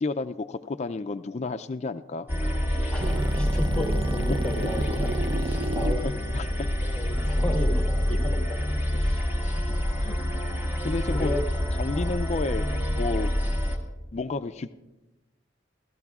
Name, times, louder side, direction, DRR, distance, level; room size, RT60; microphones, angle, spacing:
voice 1, 0.0-3.0 4.3-4.4 6.0-7.0 9.2-9.7 10.0-10.2 10.8-11.3 11.8-13.3 14.1-14.7, left 3 dB, 40° left, 10 dB, 0.4 m, -32 dB
sound 1, 2.3-13.8, equal, 10° right, 1.7 m, -27 dB
voice 2, 2.9-5.1 5.4-6.1 6.9-8.4 9.0-9.2 11.1-11.4 11.9-12.1, left 1 dB, 5° left, 1 dB, 1.5 m, -33 dB
sound 2, 3.0-8.1, right 1 dB, 30° right, 0.5 m, -31 dB
29.5 x 14.0 x 2.4 m, 1.0 s
head